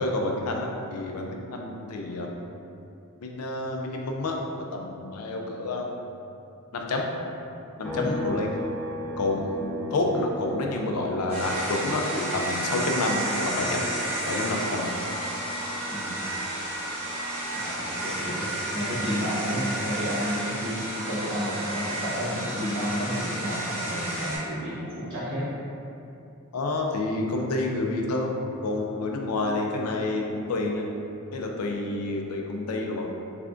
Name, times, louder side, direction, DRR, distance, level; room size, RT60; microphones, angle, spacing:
voice 1, 0.0-2.3 3.2-5.9 6.7-7.1 7.8-8.5 9.2-13.9 14.3-14.9 26.5-28.4 28.6-30.9 31.3-33.1, left 2 dB, 85° left, 1 dB, 0.5 m, -29 dB
sound 1, 7.8-21.4 21.7-23.9, equal, 5° left, 0.6 m, -40 dB
sound 2, 11.3-24.4, right 1 dB, 80° right, 1.5 m, -31 dB
voice 2, 17.5-20.8 21.1-25.5, equal, 60° right, -11 dB, 1.2 m, -31 dB
3.6 x 3.3 x 2.4 m, 2.7 s
head